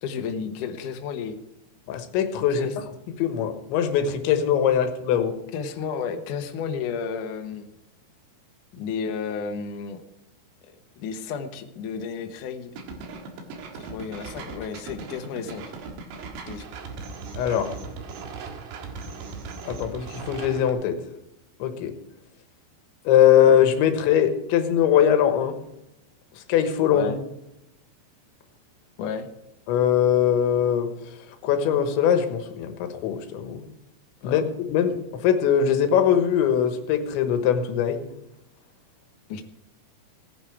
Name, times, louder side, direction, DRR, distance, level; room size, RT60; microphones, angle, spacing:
voice 1, 0.0-1.4 2.5-2.8 5.5-7.7 8.7-10.0 10.7-12.7 13.7-15.6 16.4-16.6 26.9-27.2 29.0-29.3 34.2-34.4 39.3-39.4, left 6 dB, 65° left, 5 dB, 2.1 m, -32 dB
voice 2, 1.9-2.9 3.2-5.4 17.4-17.7 19.7-21.0 21.6-21.9 23.1-25.6 26.4-27.1 29.7-30.9 31.4-33.7 34.2-34.4 34.7-38.0, left 9 dB, 90° left, 7 dB, 3.6 m, -21 dB
sound 1, 12.8-20.7, right 4 dB, 70° right, 3.6 m, -38 dB
17.5 x 9.7 x 4.9 m, 0.89 s
omnidirectional pair, 5.1 m